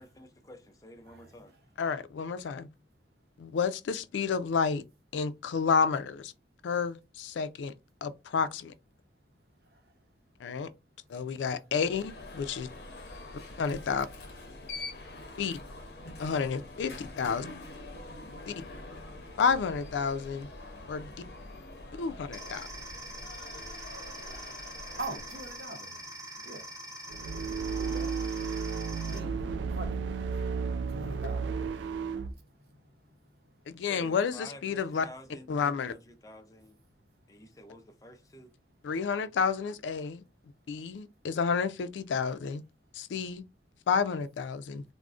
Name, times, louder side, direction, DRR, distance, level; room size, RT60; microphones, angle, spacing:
voice 1, 0.0-1.5 33.8-36.8 37.3-38.5, left 1 dB, 20° left, 0.4 m, -50 dB
voice 2, 1.8-2.7 3.4-4.8 5.1-6.3 6.6-7.7 8.0-8.7 10.4-10.7 11.1-12.7 13.6-14.1 15.4-15.6 16.2-17.5 18.5-18.6 19.4-20.5 20.9-21.1 22.0-22.7 33.7-35.1 35.5-35.9 38.8-40.2 40.7-42.6 42.9-43.4 43.9-44.8, left 5 dB, 90° left, 0.3 m, -30 dB
Alarm, 11.8-25.7, left 2 dB, 65° left, 0.7 m, -45 dB
sound 1, 22.3-29.2, right 1 dB, 20° right, 0.8 m, -44 dB
voice 3, 25.0-26.0 26.4-26.7 27.8-28.1 29.0-29.3 29.8-30.0 30.9-31.5, right 2 dB, 60° right, 0.7 m, -41 dB
sound 2, 27.1-32.3, right 5 dB, 80° right, 0.3 m, -33 dB
3.6 x 2.0 x 2.4 m
head